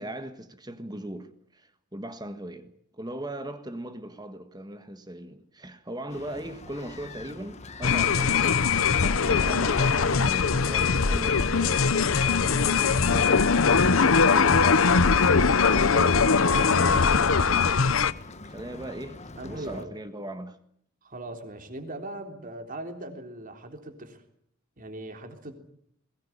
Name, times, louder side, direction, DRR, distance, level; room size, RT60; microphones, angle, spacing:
voice 1, 0.0-8.6 9.0-18.1 18.4-20.6, right 1 dB, 20° right, 1.5 m, -39 dB
sound 1, 6.1-19.9, left 2 dB, 35° left, 1.3 m, -44 dB
sound 2, 7.8-18.1, left 5 dB, 80° left, 0.9 m, -21 dB
sound 3, 9.3-17.7, left 2 dB, 50° left, 1.6 m, -44 dB
voice 2, 19.4-19.9 21.0-24.2 24.8-25.5, right 1 dB, 40° right, 3.6 m, -40 dB
21.5 x 19.0 x 10.0 m
head